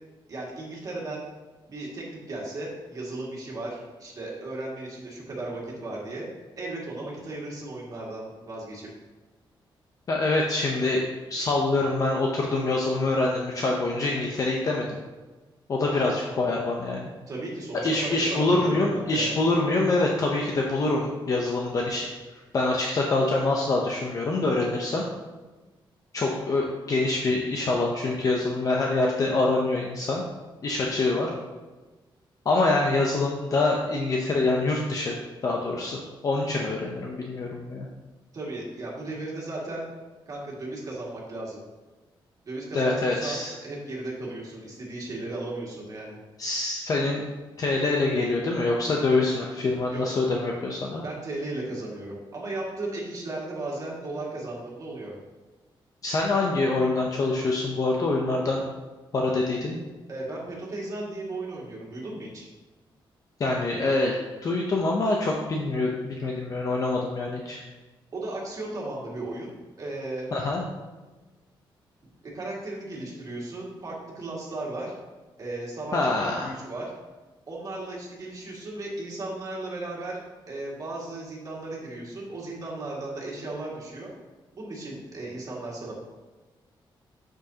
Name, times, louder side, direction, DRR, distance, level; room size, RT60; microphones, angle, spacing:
voice 1, 0.3-1.2 1.7-6.3 6.6-8.9 17.3-19.4 38.3-39.9 40.3-41.6 42.4-46.2 49.9-50.1 51.0-55.2 60.1-62.5 68.1-70.4 72.3-74.9 75.4-76.9 77.5-80.2 80.5-84.1 84.5-86.0, right 2 dB, 40° right, -4 dB, 2.1 m, -35 dB
voice 2, 10.1-14.9 15.7-17.1 17.8-22.1 22.5-25.0 26.1-30.2 30.6-31.3 32.4-35.1 35.4-37.9 42.7-43.5 46.4-47.2 47.6-51.0 56.0-58.6 59.1-59.8 63.4-64.2 64.4-67.6 70.3-70.6 75.9-76.5, left 2 dB, 40° left, -1 dB, 0.7 m, -25 dB
7.7 x 6.3 x 2.9 m, 1.2 s
wide cardioid pair, 140°, 9 cm